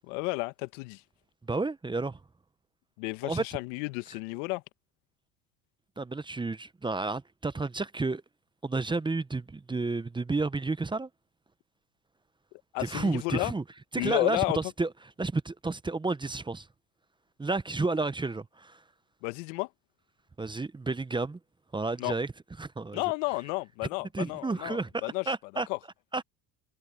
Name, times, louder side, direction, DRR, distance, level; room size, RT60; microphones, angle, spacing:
voice 1, 0.1-1.0 3.0-4.6 12.7-13.5 14.0-14.6 19.2-19.7 22.0-22.1 22.9-25.3 25.7-25.8, left 25 dB, 70° left, 1.3 m, -32 dB
voice 2, 1.5-2.2 3.2-3.4 6.0-8.2 8.6-11.1 12.8-13.6 13.9-14.9 15.2-16.7 17.4-18.8 20.4-21.4 21.7-22.3 22.6-23.0 24.1-25.7 26.1-26.2, right 3 dB, 10° right, 0.9 m, -31 dB
hypercardioid pair, 80°, 39 cm